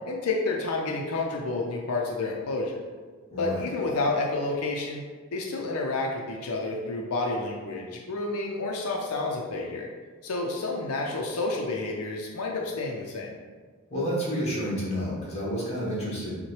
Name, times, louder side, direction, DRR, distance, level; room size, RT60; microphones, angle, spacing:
voice 1, 0.1-2.8 3.4-5.0 5.3-9.9 10.2-13.3, left 3 dB, 90° left, 0 dB, 0.5 m, -30 dB
voice 2, 3.3-3.6 13.9-16.4, equal, 30° left, -6 dB, 1.3 m, -30 dB
5.7 x 2.2 x 3.1 m, 1.4 s
head